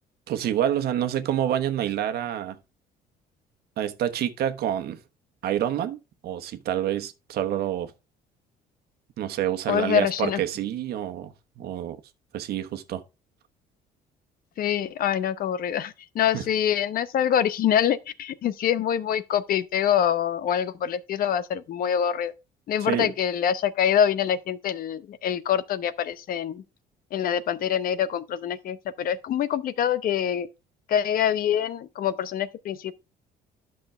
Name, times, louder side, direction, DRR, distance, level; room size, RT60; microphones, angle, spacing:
voice 1, 0.3-2.6 3.8-5.0 5.4-7.9 9.2-12.0 12.3-13.0 16.3-16.4 22.8-23.1, right 11 dB, 70° right, 1.1 m, -27 dB
voice 2, 9.7-10.4 14.6-22.3 22.7-26.6 27.1-30.5 30.9-32.9, left 9 dB, 60° left, 0.8 m, -25 dB
10.5 x 6.3 x 3.4 m
cardioid pair, 110°, 17 cm